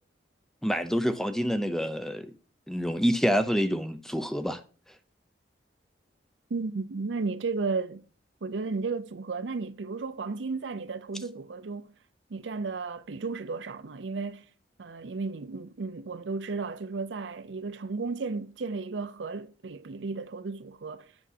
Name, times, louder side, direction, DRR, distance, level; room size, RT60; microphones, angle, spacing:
voice 1, 0.6-2.3 2.7-4.6, equal, ahead, 0.5 m, -27 dB
voice 2, 6.5-8.0 8.4-11.9 12.3-14.5 14.8-21.1, right 4 dB, 80° right, 0.5 m, -34 dB
8.0 x 6.1 x 2.7 m
head